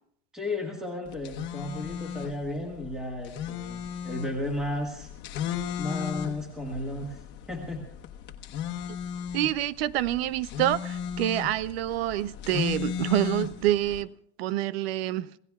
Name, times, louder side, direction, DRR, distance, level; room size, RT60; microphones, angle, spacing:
voice 1, 0.3-5.1 5.8-7.2 7.5-7.8, left 1 dB, ahead, 1.6 m, -34 dB
sound 1, 1.1-14.0, left 8 dB, 40° left, 1.2 m, -36 dB
voice 2, 9.3-14.1 14.4-15.3, right 13 dB, 90° right, 0.7 m, -27 dB
26.5 x 17.0 x 2.4 m
supercardioid pair, 155°, 30 cm